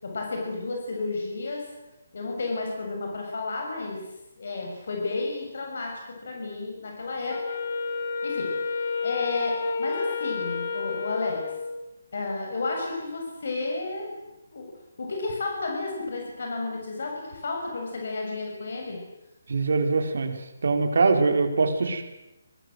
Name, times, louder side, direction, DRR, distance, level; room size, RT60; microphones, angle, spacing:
voice 1, 0.0-1.7 2.1-4.0 4.4-7.4 8.2-11.4 12.1-14.1 14.5-14.7 15.0-19.0, left 3 dB, 50° left, 1 dB, 6.9 m, -32 dB
Wind instrument woodwind instrument, 7.3-11.9, left 4 dB, 30° left, 2.5 m, -30 dB
voice 2, 19.5-20.3 20.6-22.0, right 4 dB, 60° right, 6 dB, 4.0 m, -22 dB
29.5 x 21.5 x 7.9 m, 0.95 s
hypercardioid pair, 180°, 0 cm